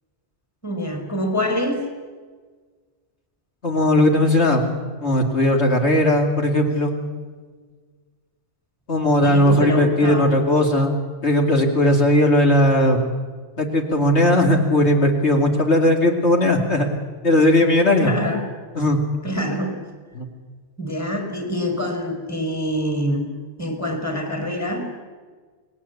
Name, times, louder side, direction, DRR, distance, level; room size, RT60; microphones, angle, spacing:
voice 1, 0.6-1.8 9.2-10.3 18.0-18.4 19.2-19.7 20.8-24.9, equal, 15° left, 3 dB, 5.1 m, -25 dB
voice 2, 3.6-4.7 5.0-6.9 8.9-11.0 11.2-13.1 13.6-16.9 17.2-18.1 18.8-19.0 20.1-20.3, left 1 dB, 65° left, 2 dB, 2.9 m, -17 dB
29.0 x 20.5 x 8.5 m, 1.5 s
omnidirectional pair, 1.2 m